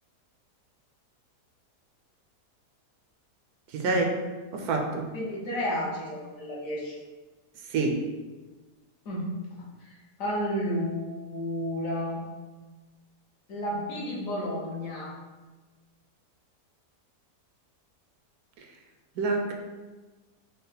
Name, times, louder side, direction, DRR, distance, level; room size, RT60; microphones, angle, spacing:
voice 1, 3.7-4.0 4.5-5.1 7.7-8.0 19.2-19.5, right 3 dB, 75° right, 2 dB, 1.1 m, -26 dB
voice 2, 5.1-7.0 9.0-9.3 9.8-12.2 13.5-15.2, equal, 60° left, -4 dB, 1.2 m, -32 dB
5.3 x 2.0 x 3.9 m, 1.3 s
omnidirectional pair, 1.7 m